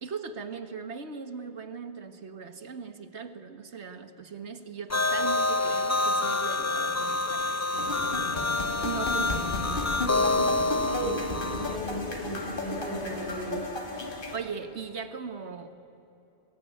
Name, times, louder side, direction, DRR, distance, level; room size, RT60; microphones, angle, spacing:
voice 1, 0.0-7.6 8.0-8.2 8.8-10.1 14.3-15.8, right 6 dB, 75° right, 9 dB, 1.7 m, -39 dB
sound 1, 4.9-11.8, left 2 dB, 20° left, 0.5 m, -27 dB
sound 2, 7.7-14.4, left 2 dB, 50° left, 2.6 m, -34 dB
voice 2, 10.8-13.6, right 1 dB, 15° right, -4 dB, 7.4 m, -35 dB
23.0 x 20.5 x 9.2 m, 2.9 s
omnidirectional pair, 1.2 m